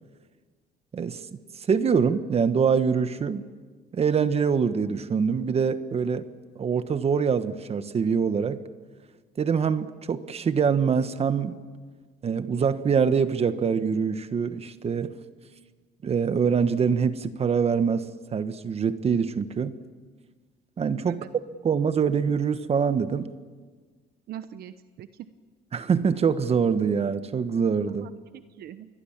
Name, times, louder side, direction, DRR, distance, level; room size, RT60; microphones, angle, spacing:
voice 1, 0.9-3.4 3.9-6.3 6.5-8.6 9.4-11.6 12.2-15.2 16.0-19.7 20.8-21.2 21.6-23.3 25.7-28.1, right 6 dB, 35° right, 11 dB, 1.3 m, -24 dB
voice 2, 24.3-25.3 27.9-28.9, right 11 dB, 65° right, 11 dB, 1.0 m, -42 dB
27.5 x 20.5 x 7.4 m, 1.5 s
cardioid pair, 110°, 17 cm